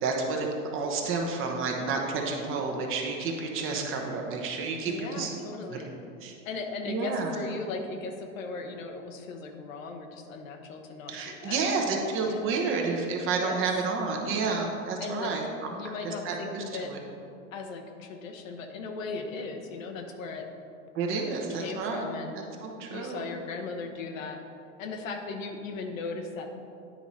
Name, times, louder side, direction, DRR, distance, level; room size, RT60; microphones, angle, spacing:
voice 1, 0.0-5.3 5.7-5.8 6.2-6.3 6.9-7.3 11.1-15.4 16.0-17.0 20.9-22.0 22.6-23.2, right 4 dB, 30° right, 1 dB, 1.0 m, -30 dB
voice 2, 4.8-5.9 6.4-11.6 12.2-12.5 13.4-13.6 15.0-15.3 15.8-16.9 17.5-20.5 21.5-22.5 22.9-24.4 24.8-26.5, left 4 dB, 80° left, 4 dB, 1.1 m, -37 dB
9.9 x 4.7 x 4.2 m, 2.6 s
supercardioid pair, 135°, 39 cm